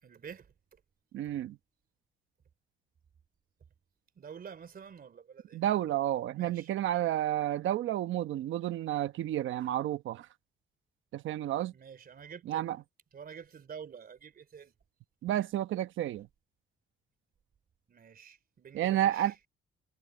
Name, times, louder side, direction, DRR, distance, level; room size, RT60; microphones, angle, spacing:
voice 1, 0.0-0.5 1.2-1.3 4.1-5.6 6.3-6.7 11.7-12.7 13.1-14.7 17.9-19.4, right 7 dB, 50° right, 3.4 m, -48 dB
voice 2, 1.1-1.6 5.5-10.3 11.1-11.7 12.5-12.8 15.2-16.3 18.7-19.3, right 12 dB, 80° right, 1.0 m, -31 dB
cardioid pair, 90°, 20 cm